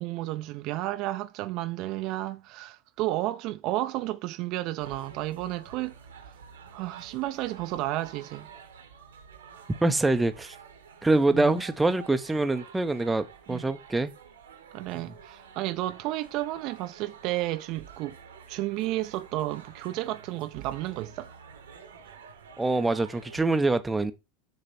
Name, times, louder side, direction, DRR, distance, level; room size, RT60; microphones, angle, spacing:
voice 1, 0.0-5.9 6.7-8.5 11.3-11.5 13.5-13.7 14.7-18.2 18.5-21.3, right 16 dB, 55° right, 0.6 m, -32 dB
sound 1, 4.8-23.4, right 6 dB, 85° right, 1.2 m, -49 dB
voice 2, 9.8-10.5 11.0-14.1 22.6-24.1, right 2 dB, 10° right, 0.7 m, -25 dB
6.7 x 3.3 x 4.2 m
hypercardioid pair, 85°, 0 cm